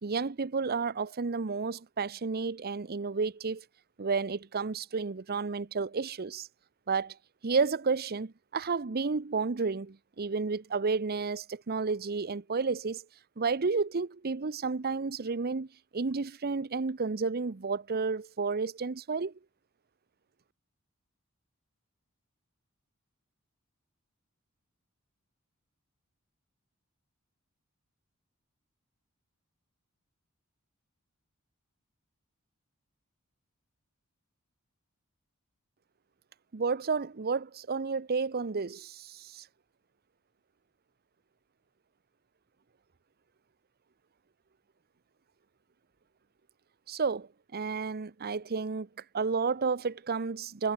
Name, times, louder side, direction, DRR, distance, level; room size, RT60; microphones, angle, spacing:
voice 1, 0.0-3.6 4.0-6.5 6.9-7.2 7.4-13.0 13.4-15.7 15.9-19.3 36.5-39.4 46.9-48.9 49.1-50.7, right 4 dB, 45° right, 0.7 m, -31 dB
head